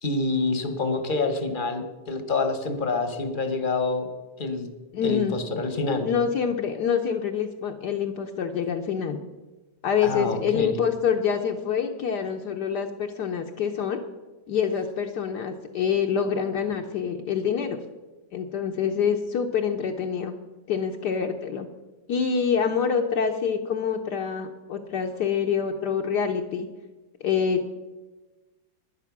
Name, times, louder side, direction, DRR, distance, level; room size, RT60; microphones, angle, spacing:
voice 1, 0.0-4.1 4.4-4.7 5.0-6.1 10.0-10.7, left 3 dB, 30° left, 7 dB, 1.0 m, -27 dB
voice 2, 4.9-5.4 6.0-9.2 9.8-14.0 14.5-17.8 18.3-20.3 20.7-21.7 22.1-26.7 27.2-27.7, left 7 dB, 65° left, 3 dB, 1.2 m, -26 dB
11.5 x 10.0 x 6.0 m, 1.2 s
omnidirectional pair, 2.1 m